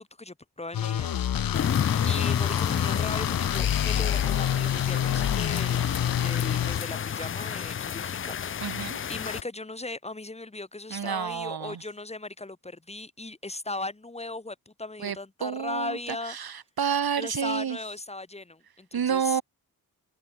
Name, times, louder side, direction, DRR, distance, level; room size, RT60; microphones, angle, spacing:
voice 1, 0.0-1.7 2.0-8.8 9.1-16.4 17.2-19.4, left 2 dB, 15° left, 1.7 m, -38 dB
sound 1, 0.7-6.8, left 10 dB, 65° left, 0.9 m, -27 dB
sound 2, 1.5-9.4, left 8 dB, 35° left, 0.4 m, -30 dB
voice 2, 8.6-9.0 10.9-11.8 15.0-15.2 15.4-16.0 16.3-17.8 18.9-19.4, right 8 dB, 75° right, 2.7 m, -29 dB
cardioid pair, 75°, 37 cm